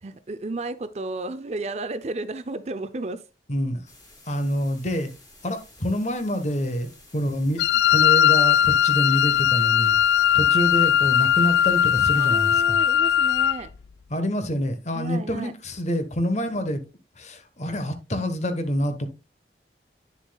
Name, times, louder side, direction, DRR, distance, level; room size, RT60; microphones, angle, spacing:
voice 1, 0.0-3.2 12.1-13.7 14.9-15.5, right 2 dB, 35° right, 0.5 m, -33 dB
voice 2, 3.5-3.8 4.3-5.1 5.4-10.0 10.3-12.8 14.1-16.8 17.2-19.1, equal, 40° left, 1.1 m, -27 dB
sound 1, 3.9-12.6, left 2 dB, 20° left, 2.9 m, -51 dB
Wind instrument woodwind instrument, 7.6-13.6, left 10 dB, 70° left, 0.3 m, -19 dB
9.8 x 7.0 x 2.2 m
head